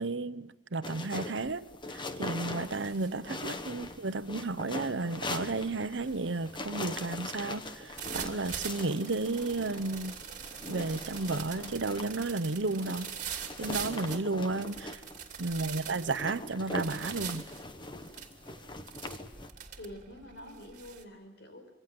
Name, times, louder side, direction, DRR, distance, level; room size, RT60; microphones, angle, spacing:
voice 1, 0.0-10.1 10.7-13.1 13.6-15.0 15.4-17.4, right 3 dB, 80° right, 1.0 m, -33 dB
sound 1, 0.8-19.5, left 2 dB, 25° left, 1.3 m, -42 dB
sound 2, 1.5-1.7 2.1-21.0, right 8 dB, 45° right, 2.7 m, -44 dB
voice 2, 15.4-15.9 19.7-21.7, left 1 dB, 65° left, 5.6 m, -48 dB
26.0 x 23.5 x 7.9 m
head